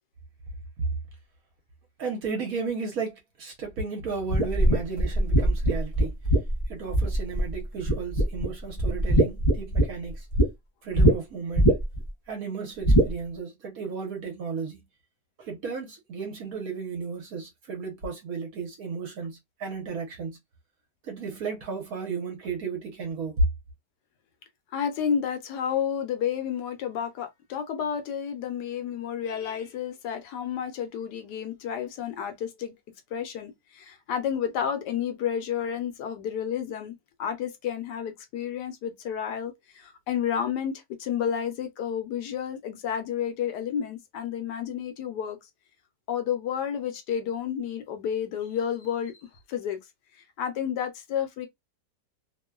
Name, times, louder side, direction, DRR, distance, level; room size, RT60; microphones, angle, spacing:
voice 1, 2.0-6.1 6.7-10.3 10.8-11.7 12.3-14.8 15.4-20.4 21.0-23.4, right 4 dB, 60° right, 1.1 m, -33 dB
sound 1, 4.3-7.5 7.9-8.5 8.8-10.5 11.0-11.1 11.5-12.1 12.8-13.1, right 1 dB, 35° left, 0.6 m, -21 dB
voice 2, 24.7-32.7 33.1-45.4 46.1-49.8 50.4-51.5, left 8 dB, 75° left, 1.1 m, -31 dB
3.0 x 2.1 x 2.3 m
omnidirectional pair, 1.9 m